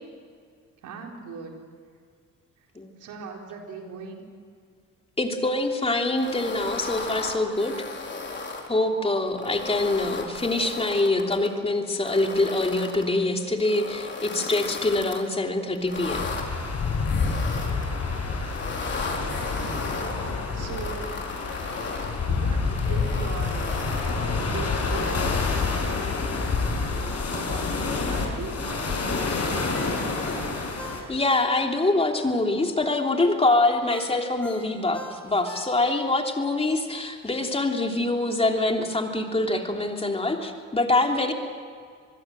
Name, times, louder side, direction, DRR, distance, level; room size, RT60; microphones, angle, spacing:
voice 1, 0.8-1.6 3.0-4.3 7.7-7.8 19.0-19.9 20.5-21.2 22.3-24.0 24.4-25.4 27.3-30.7, right 4 dB, 80° right, 1 dB, 4.3 m, -39 dB
voice 2, 5.2-7.7 8.7-16.3 31.1-41.3, left 2 dB, 20° left, 2 dB, 3.3 m, -24 dB
sound 1, 6.1-8.7 9.3-11.5 12.0-13.0 13.6-15.2 15.8-16.4 17.1-17.9 18.4-20.1 20.6-22.1 22.7-24.2 24.8-25.7, left 4 dB, 35° left, 4.2 m, -36 dB
sound 2, 16.1-31.0, left 4 dB, 55° left, 5.8 m, -28 dB
Ringtone, 29.7-32.0 32.4-32.5 33.9-36.1 36.5-36.6, right 1 dB, 5° left, 5.7 m, -42 dB
26.0 x 21.0 x 7.7 m, 2.1 s
cardioid pair, 90°, 30 cm